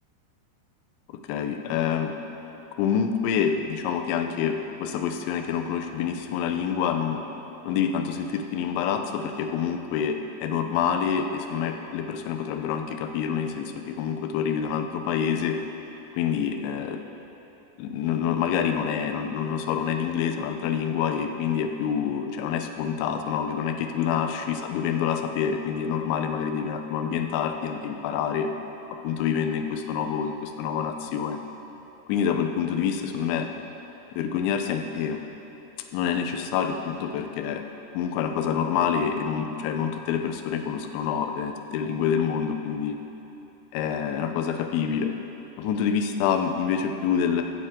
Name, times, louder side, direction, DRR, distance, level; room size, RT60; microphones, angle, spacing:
voice 1, 1.1-2.1 2.8-7.2 7.6-15.6 16.1-17.0 17.8-28.5 29.0-31.4 32.1-33.5 34.2-35.2 35.9-37.6 37.9-43.0 43.7-45.1 45.6-47.4, left 7 dB, 85° left, 6 dB, 3.0 m, -27 dB
16.0 x 7.0 x 3.6 m, 3.0 s
omnidirectional pair, 5.1 m